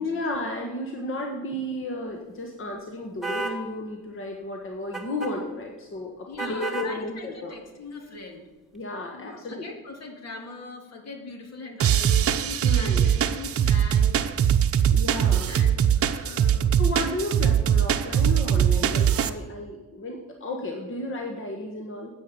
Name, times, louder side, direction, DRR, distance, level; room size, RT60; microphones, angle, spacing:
voice 1, 0.0-7.5 8.7-9.7 12.6-13.0 14.9-15.6 16.8-22.1, left 1 dB, 45° left, 1 dB, 1.6 m, -33 dB
sound 1, 3.2-3.6 4.9-5.3 6.4-6.9, right 3 dB, ahead, 1.9 m, -31 dB
voice 2, 6.3-8.5 9.1-14.3 15.5-16.7, left 3 dB, 60° left, 4 dB, 2.2 m, -41 dB
sound 2, 11.8-19.3, right 9 dB, 50° right, 0.7 m, -21 dB
9.3 x 8.6 x 5.4 m, 1.2 s
cardioid pair, 90°, 30 cm